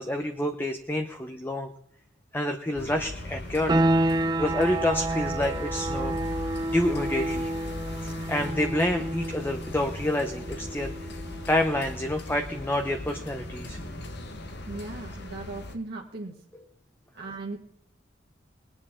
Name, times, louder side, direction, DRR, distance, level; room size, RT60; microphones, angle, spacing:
voice 1, 0.0-1.7 2.3-3.8 4.4-6.1 6.6-7.5 8.0-10.9 11.5-13.8, left 1 dB, 10° left, 6 dB, 0.8 m, -28 dB
sound 1, 2.7-15.7, left 1 dB, 60° left, 1.4 m, -38 dB
sound 2, 3.7-14.2, right 1 dB, 20° right, 0.5 m, -30 dB
voice 2, 14.7-16.3 17.1-17.6, right 3 dB, 55° right, -2 dB, 1.7 m, -38 dB
20.5 x 9.8 x 3.7 m, 0.74 s
head